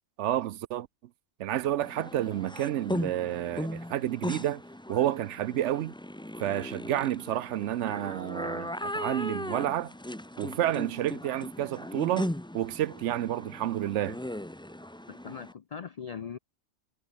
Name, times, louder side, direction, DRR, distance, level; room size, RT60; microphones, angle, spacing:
voice 1, 0.2-0.9 1.4-4.6 4.9-5.9 6.4-9.9 10.4-14.2, right 12 dB, 70° right, 0.8 m, -30 dB
sound 1, 1.8-15.5, left 1 dB, 5° left, 0.6 m, -38 dB
voice 2, 15.1-16.4, left 7 dB, 70° left, 0.3 m, -40 dB
omnidirectional pair, 1.3 m